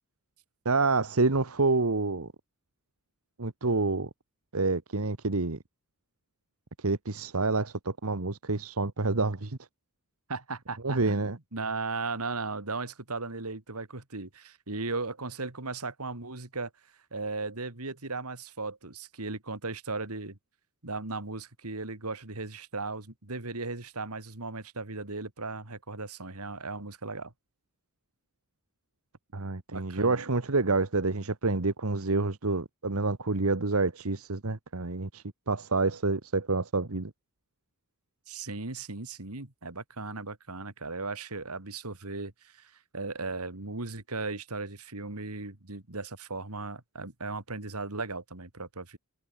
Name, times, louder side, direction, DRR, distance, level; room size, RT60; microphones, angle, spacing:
voice 1, 0.6-2.3 3.4-4.1 4.5-5.6 6.8-9.6 10.8-11.4 29.3-37.1, right 3 dB, 70° right, 1.4 m, -28 dB
voice 2, 10.3-11.2 11.5-16.7 17.1-20.4 20.8-27.3 29.7-30.3 38.3-49.0, right 3 dB, 90° right, 2.9 m, -37 dB
head